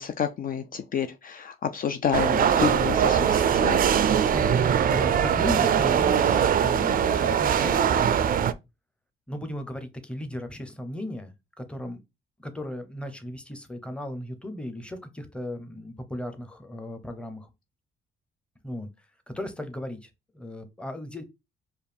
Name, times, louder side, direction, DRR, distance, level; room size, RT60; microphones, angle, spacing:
voice 1, 0.0-3.8, left 8 dB, 45° left, 0.4 m, -29 dB
sound 1, 2.1-8.5, right 8 dB, 45° right, 0.4 m, -22 dB
voice 2, 4.2-4.6 4.9-7.8 9.3-12.0 12.4-17.5 18.6-18.9 19.3-20.1 20.3-21.2, left 1 dB, 5° left, 0.8 m, -36 dB
4.7 x 2.4 x 3.4 m
cardioid pair, 90°, 20 cm